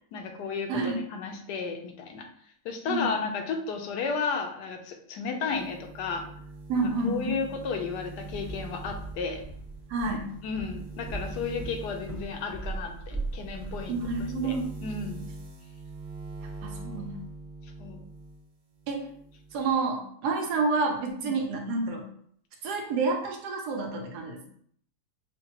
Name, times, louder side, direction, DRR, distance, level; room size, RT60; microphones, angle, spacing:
voice 1, 0.1-2.3 2.6-6.3 6.8-9.4 10.4-14.0 14.4-15.3 17.0-17.1 17.8-18.0 21.2-21.3, left 5 dB, 85° left, 5 dB, 1.2 m, -33 dB
sound 1, 5.5-18.4 18.8-19.8, right 3 dB, 50° right, 0.6 m, -43 dB
voice 2, 6.7-7.4 9.9-10.3 13.9-14.7 16.6-17.2 18.9-19.1 19.5-22.0 22.6-24.6, right 3 dB, 80° right, 2 dB, 1.3 m, -29 dB
Walk footsteps, 8.2-14.3, right 3 dB, 30° right, 1.0 m, -39 dB
5.7 x 2.2 x 2.9 m, 0.63 s
omnidirectional pair, 1.7 m